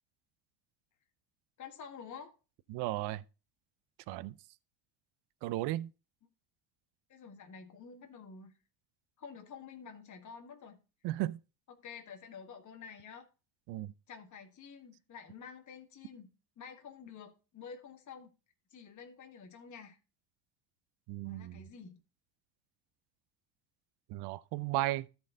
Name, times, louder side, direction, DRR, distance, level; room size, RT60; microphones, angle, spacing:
voice 1, 1.6-2.3 7.1-8.5 9.2-10.8 11.7-13.3 14.1-18.3 18.7-20.0 21.2-22.0, left 6 dB, 40° left, 1.8 m, -49 dB
voice 2, 2.7-3.2 4.1-4.3 5.4-5.9 11.0-11.4 13.7-13.9 21.1-21.6 24.1-25.1, right 16 dB, 55° right, 0.6 m, -35 dB
13.5 x 4.5 x 3.9 m
supercardioid pair, 90°, 47 cm